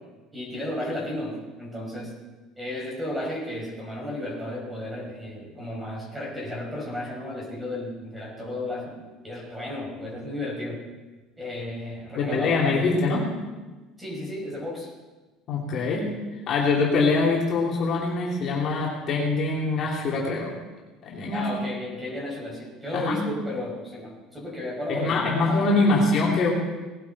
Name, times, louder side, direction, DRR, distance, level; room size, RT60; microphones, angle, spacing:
voice 1, 0.3-2.1 2.6-8.9 9.2-10.8 11.4-12.9 14.0-14.9 21.3-25.7, left 1 dB, 10° right, -3 dB, 5.4 m, -33 dB
voice 2, 12.2-13.3 15.5-16.1 16.5-20.5 21.0-21.5 22.9-23.2 24.9-26.5, left 3 dB, 40° left, -4 dB, 3.1 m, -23 dB
19.0 x 11.5 x 4.3 m, 1.2 s
cardioid pair, 140°, 0 cm